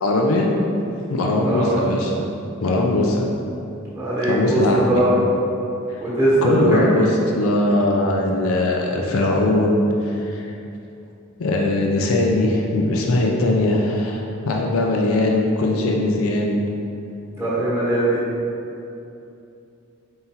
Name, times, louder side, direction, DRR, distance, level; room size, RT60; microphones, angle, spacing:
voice 1, 0.0-0.5 1.1-2.1 2.6-3.3 4.3-5.0 6.4-10.5 11.4-16.6, left 2 dB, 75° left, 0 dB, 0.5 m, -20 dB
voice 2, 1.4-1.8 3.9-5.1 6.0-7.1 17.4-18.2, right 1 dB, 10° right, -10 dB, 1.2 m, -20 dB
4.2 x 3.7 x 2.8 m, 2.7 s
head